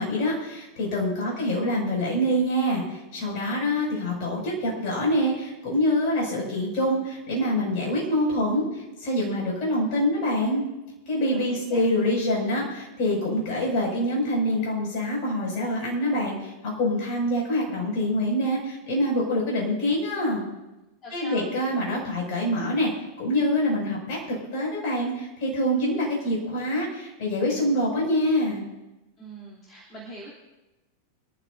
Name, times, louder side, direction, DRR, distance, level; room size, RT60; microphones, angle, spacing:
voice 1, 0.0-10.6 11.1-20.4 21.1-22.9 23.2-28.6, left 1 dB, 45° left, -3 dB, 6.0 m, -25 dB
voice 2, 1.2-1.7 11.3-11.8 21.0-21.5 29.2-30.3, equal, 30° left, -4 dB, 3.0 m, -42 dB
25.0 x 12.5 x 2.6 m, 1.0 s
figure-of-eight pair, 90°, 0 cm